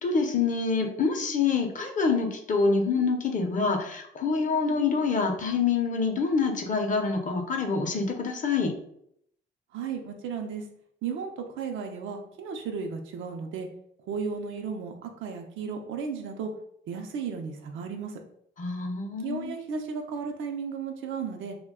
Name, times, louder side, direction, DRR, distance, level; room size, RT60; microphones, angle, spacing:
voice 1, 0.0-8.7 18.6-19.5, left 4 dB, 40° left, 4 dB, 0.6 m, -26 dB
voice 2, 9.7-10.6 11.0-13.7 14.1-16.5 16.9-18.2 19.2-21.6, right 5 dB, 80° right, 4 dB, 0.5 m, -34 dB
2.3 x 2.2 x 3.5 m, 0.71 s
cardioid pair, 90°, 20 cm